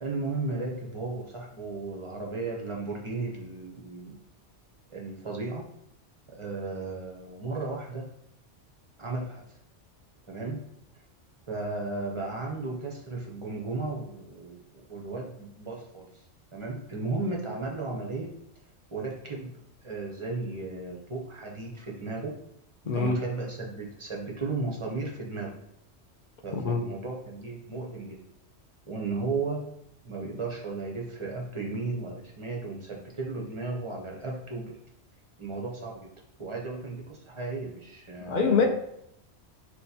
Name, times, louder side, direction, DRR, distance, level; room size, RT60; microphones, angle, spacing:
voice 1, 0.0-4.2 4.9-5.7 6.3-8.1 9.0-9.4 10.3-10.6 11.5-16.2 16.5-18.3 18.9-19.5 19.8-22.4 22.9-25.6 26.4-28.2 28.9-29.8 30.0-34.8 35.4-36.1 36.4-38.7, right 3 dB, 35° right, -2 dB, 0.5 m, -35 dB
voice 2, 22.9-23.2 26.5-26.8 38.3-38.7, left 5 dB, 55° left, 2 dB, 0.6 m, -24 dB
6.0 x 2.3 x 2.7 m, 0.76 s
omnidirectional pair, 1.2 m